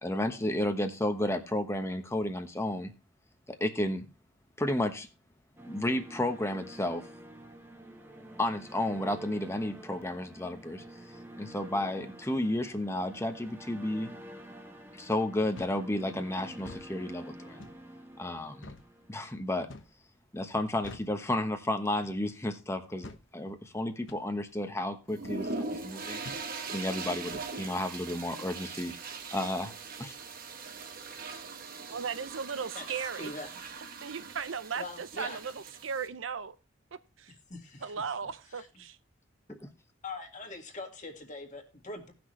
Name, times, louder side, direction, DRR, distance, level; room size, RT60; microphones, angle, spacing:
voice 1, 0.0-2.9 3.5-4.1 4.6-5.1 5.7-7.0 8.4-10.8 11.4-14.1 14.9-17.6 18.2-18.7 19.1-19.7 20.3-26.2 26.7-30.2, left 1 dB, 15° left, 1.1 m, -32 dB
sound 1, 5.6-19.7, right 1 dB, 10° right, 1.2 m, -49 dB
sound 2, 15.5-15.8 16.5-16.9 17.6-17.8 18.6-18.9 19.7-20.0 20.8-21.2 22.0-22.3 23.0-23.3 24.1-24.3 25.2-25.4 26.2-26.5 27.3-27.5, left 2 dB, 65° left, 1.0 m, -47 dB
sound 3, 25.1-36.1, right 4 dB, 45° right, 1.1 m, -41 dB
voice 2, 31.9-33.3 34.0-36.5 37.2-37.3 37.8-39.0, right 6 dB, 80° right, 0.7 m, -36 dB
voice 3, 32.7-33.5 34.7-35.4 37.5-37.9 38.5-38.7 40.0-42.1, left 2 dB, 40° left, 2.0 m, -42 dB
17.5 x 6.1 x 3.2 m
head